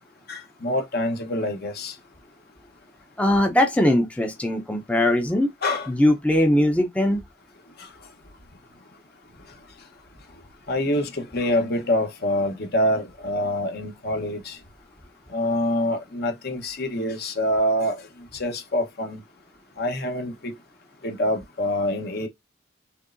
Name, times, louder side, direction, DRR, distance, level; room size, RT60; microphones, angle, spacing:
voice 1, 0.3-1.9 5.6-5.9 7.8-7.9 10.7-14.6 15.3-18.1 18.3-19.2 19.8-20.5 21.0-22.3, left 1 dB, 55° left, 1.1 m, -26 dB
voice 2, 3.2-5.5 5.9-7.2, left 1 dB, 5° left, 0.7 m, -20 dB
6.4 x 3.2 x 2.6 m
head